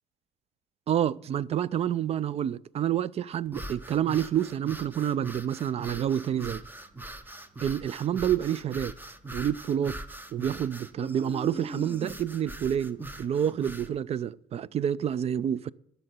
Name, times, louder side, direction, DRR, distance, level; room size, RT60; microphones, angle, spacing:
voice 1, 0.9-6.6 7.6-8.9 9.3-10.0 10.3-15.7, right 10 dB, 40° right, 0.4 m, -28 dB
sound 1, 3.5-13.9, right 1 dB, 10° right, 0.8 m, -41 dB
11.0 x 6.8 x 8.1 m
cardioid pair, 110°, 17 cm